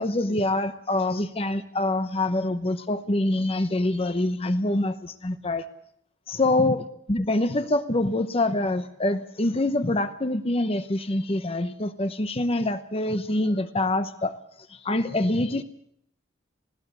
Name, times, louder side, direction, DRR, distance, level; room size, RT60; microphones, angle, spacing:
voice 1, 0.0-5.7 6.3-14.3 14.7-15.6, left 2 dB, 30° left, 10 dB, 0.8 m, -25 dB
20.5 x 17.0 x 8.1 m, 0.71 s
head